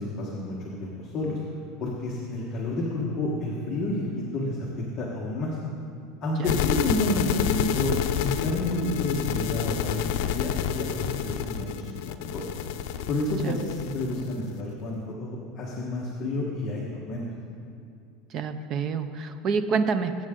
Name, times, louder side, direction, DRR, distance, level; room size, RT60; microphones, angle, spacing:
voice 1, 0.0-1.4 1.8-4.6 5.0-5.6 6.2-11.7 12.0-12.4 13.1-17.2, left 2 dB, 25° left, -4 dB, 1.4 m, -30 dB
sound 1, 6.4-14.5, left 9 dB, 65° left, 0.6 m, -29 dB
voice 2, 18.3-20.2, right 5 dB, 30° right, 10 dB, 0.6 m, -27 dB
21.0 x 8.8 x 3.8 m, 2.7 s
cardioid pair, 180°, 0 cm